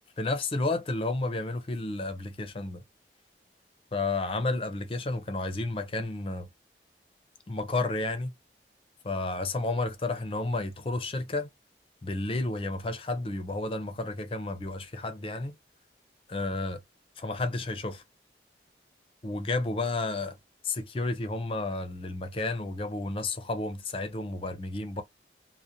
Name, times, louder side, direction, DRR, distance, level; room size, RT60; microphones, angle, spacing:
voice 1, 0.2-2.8 3.9-6.5 7.5-8.3 9.0-11.5 12.0-15.5 16.3-16.8 17.2-18.0 19.2-20.4 20.6-25.0, left 2 dB, 30° left, 0.4 m, -31 dB
2.4 x 2.0 x 2.7 m
head